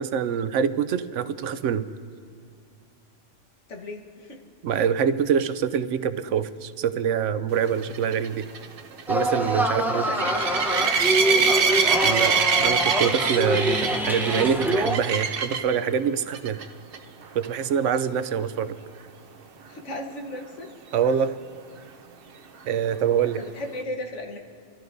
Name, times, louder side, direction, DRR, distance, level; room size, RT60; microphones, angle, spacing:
voice 1, 0.0-1.8 4.6-8.4 9.1-10.0 12.0-16.6 17.3-18.7 20.9-21.3 22.7-23.4, right 7 dB, 85° right, 12 dB, 1.0 m, -25 dB
voice 2, 3.7-4.4 9.7-12.5 19.7-20.7 23.2-24.4, left 1 dB, 80° left, 2 dB, 1.6 m, -36 dB
sound 1, 7.8-15.8 16.3-16.6 16.9-17.0 17.4-17.5 21.1-21.2, right 6 dB, 55° right, 0.9 m, -24 dB
sound 2, 9.1-15.0, equal, ahead, 0.6 m, -25 dB
29.5 x 14.0 x 2.7 m, 2.1 s
omnidirectional pair, 1.2 m